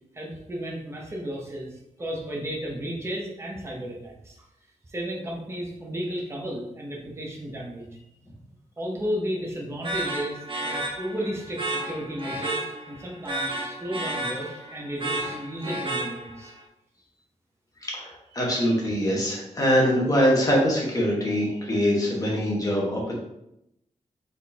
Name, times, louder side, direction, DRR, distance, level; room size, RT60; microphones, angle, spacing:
voice 1, 0.1-4.5 4.9-7.9 8.8-16.5, equal, 20° right, -2 dB, 0.8 m, -33 dB
sound 1, 9.8-16.6, right 1 dB, 40° right, 1.0 m, -32 dB
voice 2, 17.8-23.1, equal, 30° left, -3 dB, 1.3 m, -23 dB
4.3 x 3.9 x 2.8 m, 0.83 s
wide cardioid pair, 135°, 13 cm